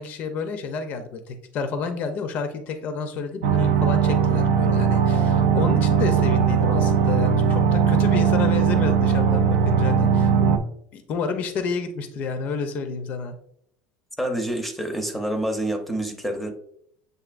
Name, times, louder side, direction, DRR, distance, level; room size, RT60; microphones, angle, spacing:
voice 1, 0.0-10.6 10.9-13.3, left 4 dB, 45° left, 7 dB, 0.5 m, -30 dB
sound 1, 3.4-10.6, right 7 dB, 90° right, 0.5 m, -19 dB
voice 2, 14.2-16.5, right 1 dB, 5° left, 4 dB, 0.6 m, -27 dB
7.6 x 2.6 x 2.5 m, 0.68 s
cardioid pair, 140°, 4 cm